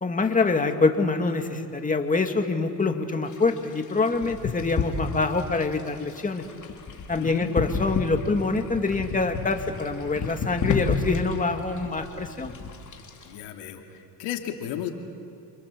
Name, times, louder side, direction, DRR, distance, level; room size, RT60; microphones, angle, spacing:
voice 1, 0.0-6.5 7.1-12.5, left 3 dB, 20° left, 5 dB, 2.2 m, -25 dB
sound 1, 3.3-13.4, left 4 dB, 45° left, 3.7 m, -32 dB
voice 2, 7.2-7.5 13.3-13.8 14.2-14.9, left 10 dB, 80° left, 3 dB, 2.8 m, -33 dB
29.0 x 27.0 x 7.6 m, 2.3 s
supercardioid pair, 90°, 41 cm